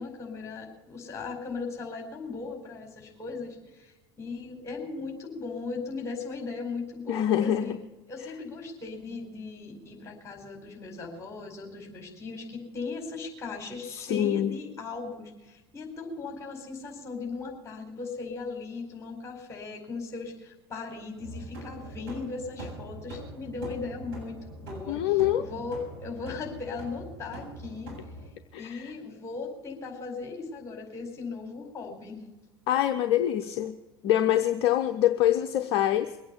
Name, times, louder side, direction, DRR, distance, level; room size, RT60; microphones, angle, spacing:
voice 1, 0.0-7.7 8.1-24.4 24.6-27.9 28.6-32.2, left 4 dB, 20° left, 2 dB, 4.7 m, -38 dB
voice 2, 7.1-7.8 14.1-14.5 24.9-25.5 28.5-28.9 32.7-33.7 34.0-36.2, left 11 dB, 45° left, 8 dB, 0.8 m, -25 dB
sound 1, 21.2-28.3, right 1 dB, 55° right, 7.3 m, -42 dB
22.5 x 8.7 x 6.9 m, 1.1 s
figure-of-eight pair, 70°, 13 cm